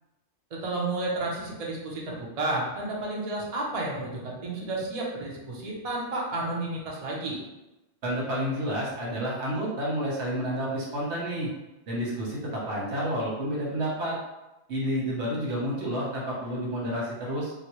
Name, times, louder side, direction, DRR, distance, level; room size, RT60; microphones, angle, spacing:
voice 1, 0.5-7.4, right 2 dB, 40° right, -3 dB, 0.6 m, -31 dB
voice 2, 8.0-11.5 11.9-14.2 14.7-17.5, equal, 70° right, -4 dB, 1.2 m, -30 dB
4.0 x 2.1 x 3.0 m, 0.99 s
omnidirectional pair, 1.2 m